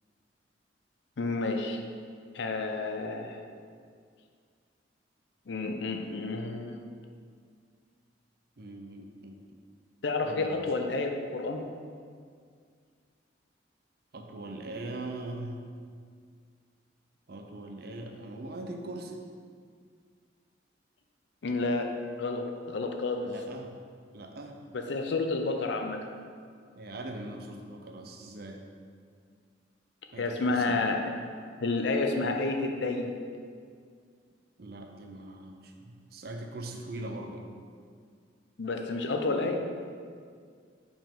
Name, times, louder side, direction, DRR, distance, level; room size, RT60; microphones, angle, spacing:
voice 1, 1.2-1.8 2.3-3.4 5.5-6.8 10.0-11.7 21.4-21.9 22.2-23.3 24.7-26.0 30.2-31.0 31.6-33.1 38.6-39.6, left 3 dB, 70° left, 4 dB, 0.5 m, -30 dB
voice 2, 8.6-9.4 10.2-10.7 14.1-15.6 17.3-19.2 23.2-23.7 24.1-24.6 26.7-28.6 30.1-30.8 34.6-37.5, right 2 dB, 55° right, 3 dB, 0.6 m, -41 dB
5.1 x 5.1 x 3.7 m, 2.1 s
head